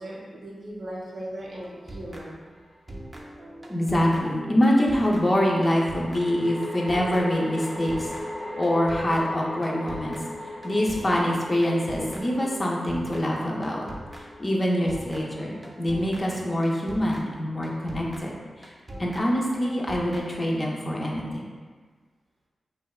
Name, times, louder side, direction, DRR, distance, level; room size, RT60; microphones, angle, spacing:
voice 1, 0.0-2.4, right 1 dB, 75° right, -4 dB, 0.6 m, -38 dB
sound 1, 1.4-2.6 2.9-20.7, right 1 dB, 30° right, 0.4 m, -43 dB
sound 2, 2.5-2.6 5.5-16.9, left 1 dB, 80° left, 0.7 m, -39 dB
voice 2, 3.7-8.1 8.5-10.2 10.6-13.9 14.4-18.7 19.0-21.5, equal, 40° left, -3 dB, 0.5 m, -25 dB
2.8 x 2.1 x 2.3 m, 1.5 s
cardioid pair, 45°, 0 cm